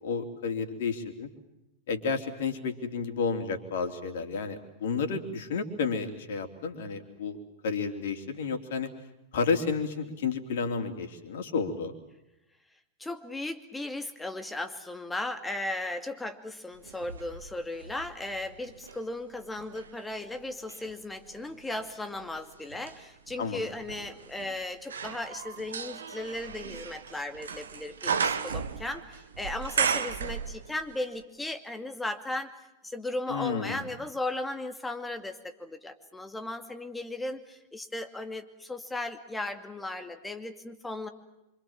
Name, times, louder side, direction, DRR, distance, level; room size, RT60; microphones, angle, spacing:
voice 1, 0.0-1.3 1.9-8.9 9.3-11.9 23.4-23.6 33.3-33.9, left 5 dB, 60° left, 5 dB, 3.4 m, -31 dB
voice 2, 13.0-32.5 32.8-41.1, left 2 dB, 10° left, 7 dB, 2.5 m, -36 dB
sound 1, 16.8-19.0 19.6-30.9 31.2-31.3, right 6 dB, 75° right, 1.6 m, -35 dB
27.0 x 25.5 x 7.4 m, 0.92 s
figure-of-eight pair, 95°, 0 cm